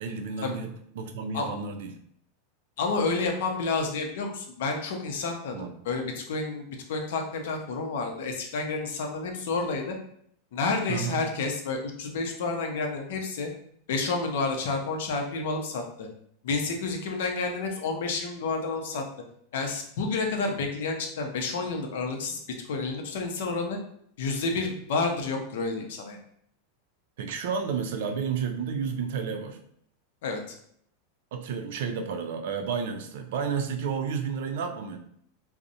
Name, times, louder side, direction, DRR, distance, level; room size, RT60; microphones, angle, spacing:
voice 1, 0.0-2.0 5.5-5.7 10.9-11.2 27.2-29.6 31.3-35.0, right 6 dB, 70° right, 5 dB, 0.4 m, -31 dB
voice 2, 2.8-9.9 10.5-13.5 13.9-16.1 16.4-19.0 19.5-22.4 22.7-23.8 24.2-26.2 30.2-30.4, left 3 dB, 75° left, 3 dB, 0.5 m, -30 dB
2.5 x 2.0 x 2.7 m, 0.68 s
supercardioid pair, 130°, 0 cm